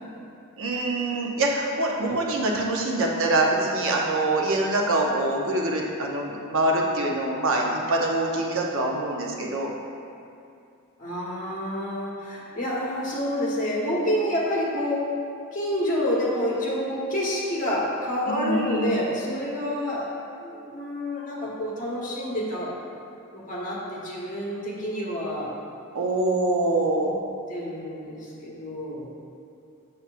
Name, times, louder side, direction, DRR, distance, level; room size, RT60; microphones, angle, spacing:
voice 1, 0.6-9.7 18.3-18.9 25.9-27.1, right 2 dB, 65° right, -1 dB, 0.8 m, -24 dB
voice 2, 11.0-15.0 15.5-20.1 20.4-22.7 23.3-25.5 26.9-27.1 27.5-29.1, equal, 35° left, -5 dB, 1.3 m, -28 dB
6.8 x 6.8 x 2.5 m, 2.6 s
head